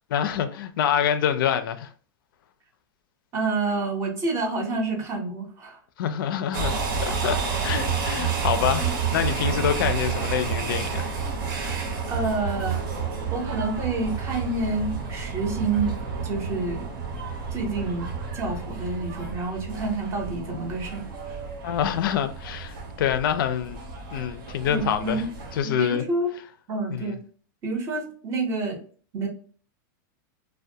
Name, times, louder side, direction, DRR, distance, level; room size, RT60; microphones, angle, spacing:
voice 1, 0.1-1.9 6.0-6.7 7.0-11.0 21.6-23.8 24.1-25.3 25.5-26.0 26.9-27.2, left 9 dB, 75° left, 0.4 m, -26 dB
voice 2, 3.3-5.8 12.1-12.8 13.3-16.9 17.5-18.1 18.3-21.0 24.6-25.3 25.6-26.3 26.7-27.2 27.6-28.8 29.1-29.3, right 3 dB, 25° right, 0.5 m, -28 dB
sound 1, 6.5-25.6, right 5 dB, 75° right, 0.8 m, -30 dB
2.2 x 2.1 x 2.6 m
supercardioid pair, 155°, 12 cm